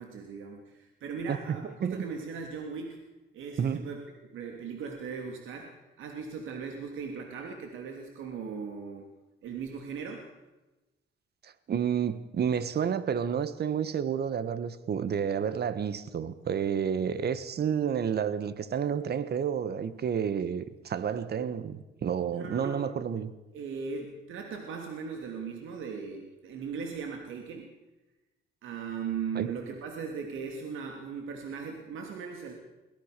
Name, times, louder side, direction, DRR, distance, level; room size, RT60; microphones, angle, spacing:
voice 1, 0.0-3.0 3.3-4.0 4.3-5.7 6.0-9.1 9.4-10.3 22.3-22.8 23.5-27.7 28.6-32.5, right 5 dB, 80° right, 3.1 m, -38 dB
voice 2, 3.6-3.9 11.4-23.3 29.3-29.5, right 7 dB, 55° right, 1.5 m, -30 dB
23.0 x 17.5 x 6.8 m
cardioid pair, 90°, 20 cm